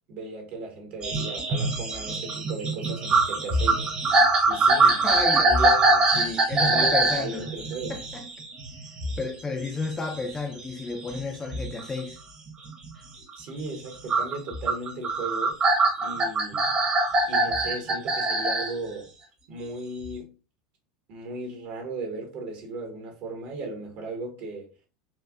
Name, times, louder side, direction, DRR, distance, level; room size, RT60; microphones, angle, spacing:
voice 1, 0.1-3.8 4.5-5.0 5.4-6.1 6.6-8.0 13.4-15.6 16.0-16.7 17.3-19.1 19.5-20.3 21.1-24.7, right 2 dB, 55° right, 1.4 m, -36 dB
sound 1, 1.0-9.3 9.6-12.0 12.5-12.9 14.1-18.7 20.0-20.1, right 2 dB, 35° right, 1.2 m, -23 dB
voice 2, 4.8-5.4 6.2-7.5 7.9-8.3 9.2-12.2, left 3 dB, 20° left, 0.6 m, -32 dB
4.4 x 2.5 x 2.4 m
hypercardioid pair, 90°, 3 cm